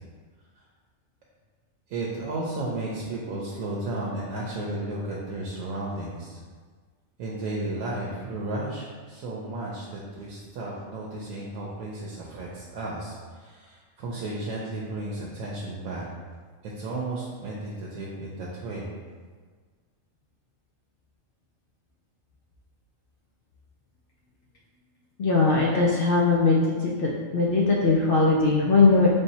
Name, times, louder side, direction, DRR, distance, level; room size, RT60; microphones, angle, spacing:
voice 1, 1.9-6.4 7.2-16.0 16.6-18.9, right 2 dB, 80° right, -4 dB, 1.0 m, -33 dB
voice 2, 25.2-29.1, left 3 dB, 60° left, -4 dB, 0.6 m, -20 dB
3.4 x 2.8 x 4.1 m, 1.5 s
omnidirectional pair, 1.4 m